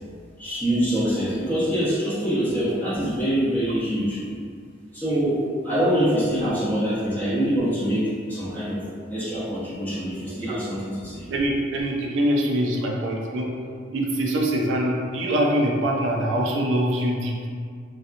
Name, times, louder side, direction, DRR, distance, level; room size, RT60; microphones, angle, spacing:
voice 1, 0.4-4.3 4.9-8.8 9.1-11.3, equal, 10° left, -12 dB, 0.8 m, -24 dB
voice 2, 11.3-13.5 13.9-17.5, right 1 dB, 75° right, -2 dB, 0.4 m, -24 dB
2.7 x 2.3 x 2.4 m, 2.1 s
head